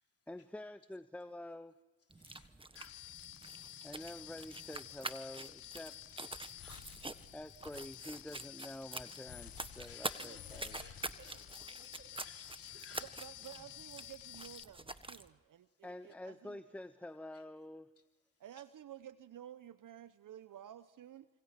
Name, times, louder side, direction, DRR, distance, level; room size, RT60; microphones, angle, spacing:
voice 1, 0.3-1.8 3.8-6.2 7.3-10.8 15.8-17.9, left 1 dB, 5° left, 13 dB, 1.0 m, -48 dB
voice 2, 2.1-3.0 6.5-7.0 9.5-11.0 12.1-13.2, left 5 dB, 40° left, 3 dB, 3.5 m, -58 dB
sound 1, 2.1-15.3, right 2 dB, 15° right, 1.4 m, -47 dB
sound 2, 2.8-14.6, left 12 dB, 65° left, 1.6 m, -51 dB
voice 3, 10.1-13.0, right 3 dB, 35° right, 8 dB, 6.4 m, -61 dB
voice 4, 13.0-16.6 18.4-21.3, right 11 dB, 55° right, 14 dB, 1.0 m, -52 dB
28.0 x 26.5 x 5.9 m, 1.2 s
hypercardioid pair, 50°, 38 cm